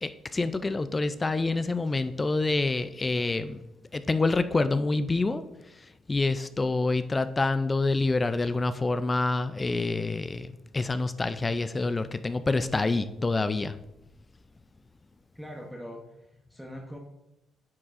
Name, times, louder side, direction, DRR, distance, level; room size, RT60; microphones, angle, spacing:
voice 1, 0.0-3.6 3.9-13.8, left 3 dB, 25° left, 11 dB, 0.3 m, -27 dB
voice 2, 15.3-17.0, equal, ahead, -1 dB, 0.8 m, -42 dB
9.5 x 4.5 x 2.5 m, 0.91 s
cardioid pair, 90°, 0 cm